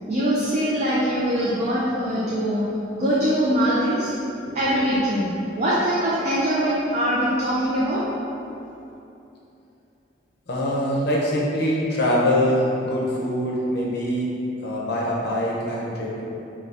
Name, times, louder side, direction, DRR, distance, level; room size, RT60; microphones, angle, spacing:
voice 1, 0.1-2.6 2.9-4.1 4.5-8.0, equal, 40° right, -8 dB, 0.4 m, -22 dB
voice 2, 10.5-14.3 14.6-16.2, equal, 65° left, -4 dB, 0.6 m, -23 dB
2.6 x 2.3 x 3.3 m, 2.8 s
head